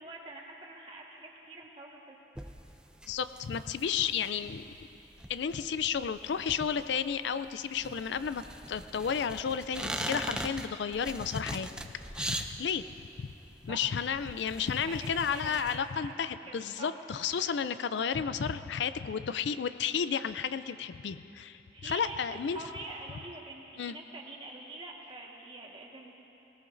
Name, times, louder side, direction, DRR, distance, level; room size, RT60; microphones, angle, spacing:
voice 1, 0.0-2.2 13.6-13.8 14.7-15.0 15.3-16.1 16.5-17.0 21.7-26.2, right 2 dB, 30° right, -2 dB, 1.5 m, -45 dB
sound 1, 2.4-15.7, right 1 dB, 5° right, 0.4 m, -42 dB
voice 2, 3.1-4.7 5.3-11.7 12.1-12.8 13.2-13.3 13.6-22.6 23.8-24.0, left 7 dB, 75° left, 12 dB, 0.4 m, -32 dB
20.0 x 19.0 x 2.6 m, 3.0 s
head